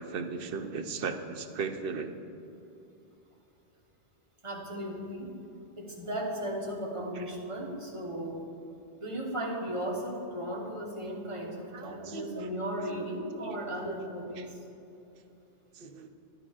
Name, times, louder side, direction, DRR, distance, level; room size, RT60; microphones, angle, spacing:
voice 1, 0.0-2.2 7.1-7.3 11.7-12.5 12.8-13.1 13.4-14.1 14.4-14.5 15.7-16.1, right 5 dB, 65° right, 7 dB, 0.8 m, -37 dB
voice 2, 4.4-5.4 5.8-8.4 9.0-14.6, equal, 30° right, -2 dB, 1.3 m, -36 dB
11.0 x 10.5 x 2.5 m, 2.9 s
omnidirectional pair, 1.1 m